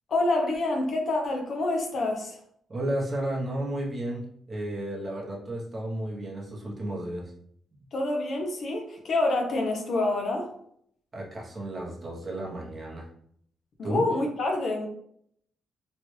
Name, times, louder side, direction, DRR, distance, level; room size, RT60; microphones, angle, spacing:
voice 1, 0.1-2.4 7.9-10.5 13.8-14.9, left 2 dB, 45° left, 2 dB, 0.6 m, -27 dB
voice 2, 2.7-7.3 11.1-13.1 13.8-14.0, right 1 dB, 25° right, -3 dB, 0.8 m, -33 dB
3.1 x 2.4 x 3.1 m, 0.67 s
cardioid pair, 150°, 0 cm